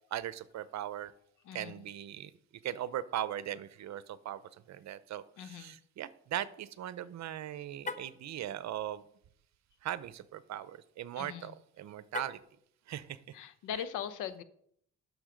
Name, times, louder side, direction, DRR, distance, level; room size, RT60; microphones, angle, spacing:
voice 1, 0.1-1.1 1.5-2.3 2.6-4.4 4.7-9.0 9.8-12.4 12.9-13.2 13.7-13.9, right 11 dB, 65° right, 16 dB, 0.7 m, -39 dB
voice 2, 1.4-1.9 5.4-5.7 11.2-11.5 13.3-14.4, left 9 dB, 90° left, 14 dB, 0.8 m, -40 dB
Car, 7.8-8.2 12.1-12.6, left 3 dB, 25° left, 1.0 m, -40 dB
11.0 x 6.5 x 5.1 m, 0.68 s
cardioid pair, 90°, 30 cm